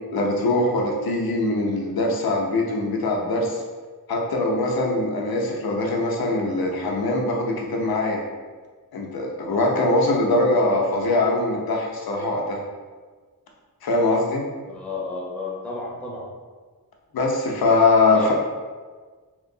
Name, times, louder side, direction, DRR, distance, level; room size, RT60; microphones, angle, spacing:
voice 1, 0.1-3.6 4.1-8.2 8.9-12.6 13.8-14.4 17.1-18.3, left 2 dB, 85° left, -1 dB, 0.6 m, -22 dB
voice 2, 14.7-16.2 18.1-18.3, left 3 dB, 5° left, -4 dB, 0.7 m, -32 dB
3.0 x 2.8 x 2.6 m, 1.4 s
wide cardioid pair, 105°, 35 cm